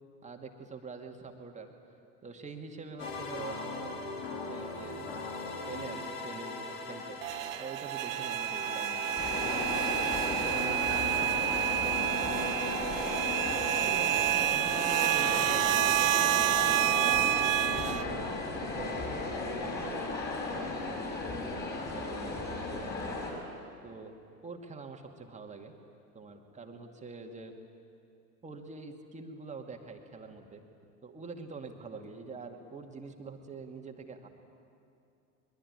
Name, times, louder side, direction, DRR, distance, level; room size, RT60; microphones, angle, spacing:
voice 1, 0.2-1.7 2.2-4.0 4.4-5.3 5.7-7.2 7.6-9.8 10.2-13.6 13.8-16.5 16.8-18.3 18.6-20.1 20.5-21.2 21.5-23.2 23.8-24.2 24.4-25.7 26.1-27.5 28.4-30.6 31.0-34.3, right 4 dB, 15° right, 4 dB, 2.3 m, -45 dB
sound 1, 3.0-19.7, left 2 dB, 50° left, 4.2 m, -40 dB
sound 2, 7.2-18.0, right 14 dB, 55° right, 0.7 m, -29 dB
sound 3, 9.2-23.3, left 2 dB, 20° left, 6.9 m, -36 dB
23.0 x 22.0 x 9.9 m, 2.5 s
figure-of-eight pair, 85°, 47 cm